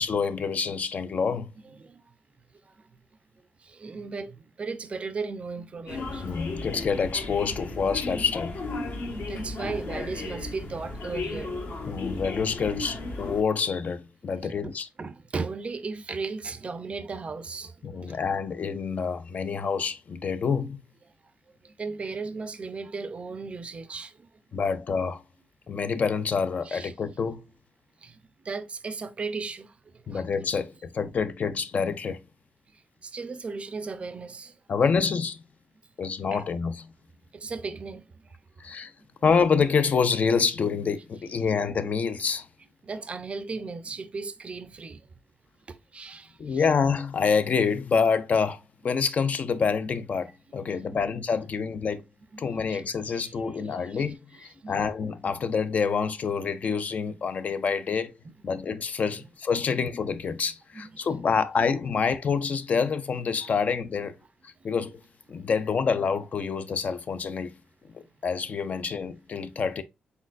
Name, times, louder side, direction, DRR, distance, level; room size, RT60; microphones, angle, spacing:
voice 1, 0.0-1.5 6.2-8.6 11.8-14.9 17.8-20.8 24.5-25.2 25.7-27.4 30.1-32.2 34.7-35.4 36.0-36.9 38.6-38.9 39.2-42.5 46.4-52.0 52.4-58.1 58.4-64.1 64.4-65.0 65.3-67.5 67.9-69.8, left 5 dB, 45° left, 0.4 m, -27 dB
voice 2, 3.6-6.2 9.3-11.6 14.4-18.2 21.6-24.3 26.6-26.9 28.0-28.2 28.4-29.8 30.1-30.3 33.0-34.6 36.3-36.4 37.3-38.3 42.8-45.1 45.9-46.6 50.8-51.0 52.3-52.8 53.1-53.3 53.9-54.0 54.6-54.8 58.2-58.3 60.7-61.1 65.5-65.6, right 4 dB, 35° right, 0.4 m, -36 dB
sound 1, 5.9-13.4, left 2 dB, 65° left, 1.2 m, -34 dB
4.3 x 3.9 x 2.4 m
cardioid pair, 120°, 3 cm